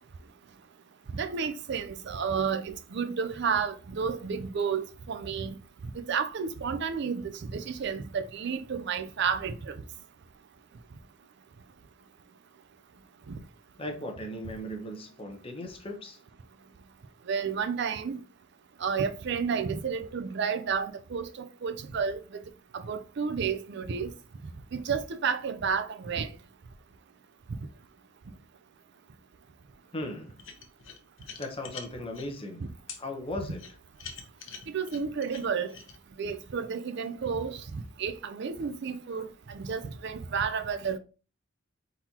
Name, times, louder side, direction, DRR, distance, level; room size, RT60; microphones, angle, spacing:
voice 1, 1.1-5.5 6.1-9.7 17.3-18.2 18.8-22.2 22.7-24.1 24.7-26.3 34.7-35.7 36.2-41.0, right 6 dB, 55° right, 0.4 m, -31 dB
voice 2, 13.8-16.2 29.9-30.4 31.4-32.7 33.0-33.6, left 1 dB, 25° left, 0.8 m, -37 dB
sound 1, 30.4-32.3 32.9-33.0 33.6-36.0, left 6 dB, 65° left, 0.8 m, -44 dB
4.3 x 3.9 x 2.8 m
head